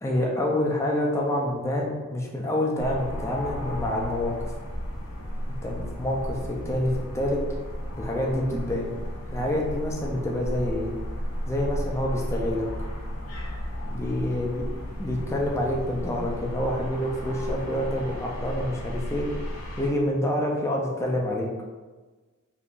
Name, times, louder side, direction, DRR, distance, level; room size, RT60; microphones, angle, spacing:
voice 1, 0.0-4.5 5.5-7.4 8.0-8.9 9.3-10.9 11.4-12.7 13.9-14.7 15.0-19.3 19.8-21.5, left 1 dB, 15° left, -2 dB, 0.4 m, -27 dB
sound 1, 2.8-19.9, equal, 80° left, 0.7 m, -34 dB
3.6 x 2.9 x 2.5 m, 1.3 s
head